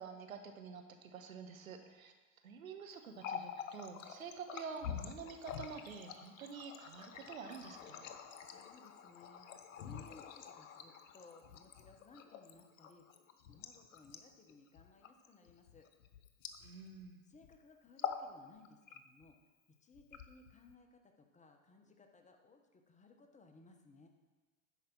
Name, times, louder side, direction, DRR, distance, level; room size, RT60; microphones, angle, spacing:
voice 1, 0.0-2.1 2.4-8.1 16.6-17.2, right 5 dB, 80° right, 5 dB, 1.1 m, -48 dB
Water tap faucet, 3.0-17.1 17.3-17.6 17.9-18.3 18.6-19.3 19.9-20.7, left 8 dB, 65° left, 0.9 m, -47 dB
voice 2, 8.5-13.1 13.5-15.9 17.3-19.4 19.8-24.1, left 3 dB, 15° left, 4 dB, 1.1 m, -61 dB
10.0 x 5.1 x 6.0 m, 1.3 s
figure-of-eight pair, 80°, 41 cm